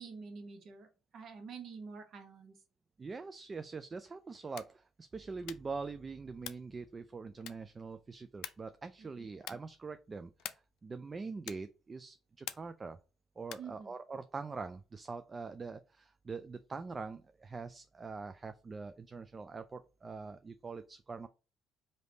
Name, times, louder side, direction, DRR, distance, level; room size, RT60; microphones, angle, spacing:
voice 1, 0.0-2.6 9.0-9.1 13.6-13.9, right 5 dB, 60° right, 6 dB, 1.1 m, -48 dB
voice 2, 3.0-13.0 13.4-21.3, right 4 dB, 30° right, 10 dB, 0.3 m, -44 dB
sound 1, 4.4-4.8 5.4-5.8 6.4-6.8 7.4-7.8 8.4-8.8 9.4-9.8 10.4-10.8 11.4-11.8 12.4-12.8 13.4-13.8, left 12 dB, 80° left, 0.3 m, -46 dB
3.4 x 2.7 x 4.0 m, 0.32 s
supercardioid pair, 80°, 0 cm